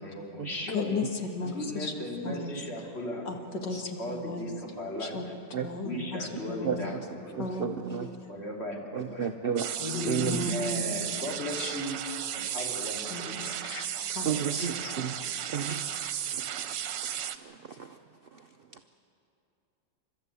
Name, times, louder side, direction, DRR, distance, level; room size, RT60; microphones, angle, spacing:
voice 1, 0.0-0.9 1.5-3.3 4.0-5.1 5.8-7.5 8.3-9.3 9.9-12.0 12.3-13.5 14.3-14.7, left 1 dB, 35° left, -1 dB, 3.2 m, -37 dB
voice 2, 0.7-1.9 2.2-2.5 3.3-4.4 5.0-5.2 5.6-6.9 7.4-8.0 8.2-8.3 9.8-11.0 11.6-11.7 12.4-12.7 13.1-13.9 14.1-14.3, left 3 dB, 70° left, 3 dB, 2.2 m, -35 dB
voice 3, 7.4-8.2 8.9-9.8 10.0-10.5 13.4-13.5 14.2-17.1 17.4-18.0 18.3-18.4, right 7 dB, 65° right, 6 dB, 0.5 m, -33 dB
sound 1, 9.6-17.4, right 10 dB, 85° right, 1.5 m, -34 dB
29.5 x 13.0 x 8.3 m, 2.7 s
omnidirectional pair, 1.9 m